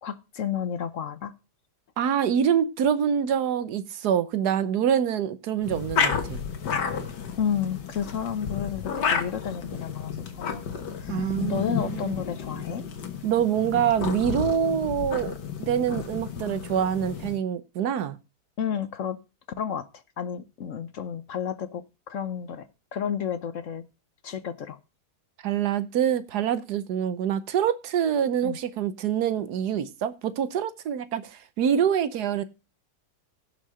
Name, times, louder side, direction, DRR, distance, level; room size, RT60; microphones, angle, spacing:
voice 1, 0.0-1.3 7.4-10.6 11.0-12.8 18.6-19.2 19.6-19.9 20.2-22.7 22.9-23.8 24.2-24.8 28.4-28.6, left 8 dB, 55° left, 1.1 m, -31 dB
voice 2, 2.0-6.4 11.1-12.1 13.2-15.3 15.6-18.2 25.4-32.4, right 8 dB, 70° right, 1.4 m, -25 dB
sound 1, 5.6-17.4, left 7 dB, 85° left, 2.0 m, -31 dB
16.5 x 5.7 x 4.9 m
omnidirectional pair, 1.8 m